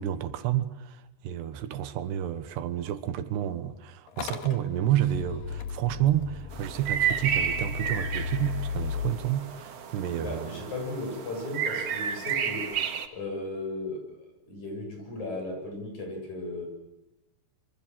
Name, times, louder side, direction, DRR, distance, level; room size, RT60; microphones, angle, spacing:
voice 1, 0.0-10.6, right 11 dB, 80° right, 3.3 m, -30 dB
Motor vehicle (road) / Engine starting, 4.1-9.1, left 6 dB, 60° left, 3.3 m, -36 dB
sound 1, 6.5-13.1, right 8 dB, 50° right, 2.1 m, -32 dB
voice 2, 10.2-12.7 13.1-14.0 14.4-16.7, left 2 dB, 45° left, 9.0 m, -35 dB
26.5 x 25.0 x 7.6 m
omnidirectional pair, 4.8 m